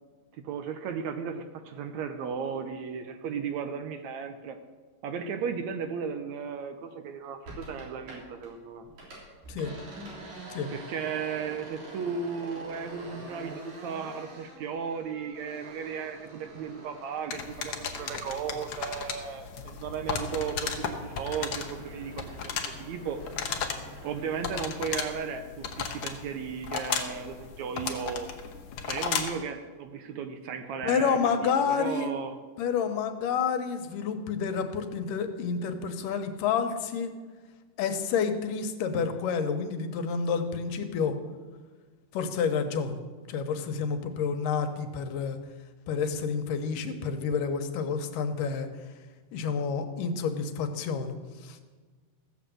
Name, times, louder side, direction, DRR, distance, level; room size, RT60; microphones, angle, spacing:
voice 1, 0.3-4.6 5.0-8.9 10.7-22.5 22.8-23.2 24.0-28.3 28.9-32.4, right 6 dB, 70° right, 8 dB, 1.9 m, -35 dB
sound 1, 7.4-8.5 8.8-19.2 19.5-24.4, right 2 dB, 90° right, 4.9 m, -47 dB
sound 2, 17.3-29.4, left 6 dB, 60° left, 1.5 m, -35 dB
voice 2, 30.8-32.1 32.6-37.1 37.8-41.2 42.1-43.0 43.3-45.4 45.9-48.7 49.3-51.2 51.4-51.6, left 6 dB, 90° left, 7 dB, 2.6 m, -29 dB
15.0 x 7.1 x 7.6 m, 1.4 s
omnidirectional pair, 3.7 m